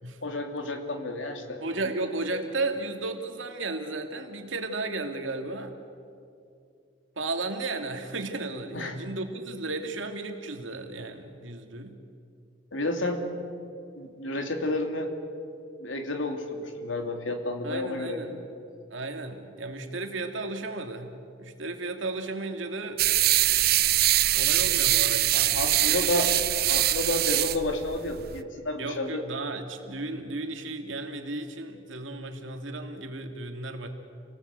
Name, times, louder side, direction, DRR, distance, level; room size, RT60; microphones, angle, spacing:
voice 1, 0.2-1.6 8.7-9.0 12.7-13.2 14.0-15.1 15.8-18.4 25.3-26.3 26.7-29.2, left 2 dB, 85° left, 5 dB, 2.8 m, -31 dB
voice 2, 1.6-5.7 7.2-11.9 17.6-18.3 18.9-21.1 21.4-23.0 24.3-26.3 28.8-33.9, right 2 dB, 85° right, 5 dB, 2.6 m, -34 dB
sound 1, 23.0-28.4, right 14 dB, 50° right, 0.6 m, -23 dB
28.5 x 19.0 x 8.3 m, 2.5 s
head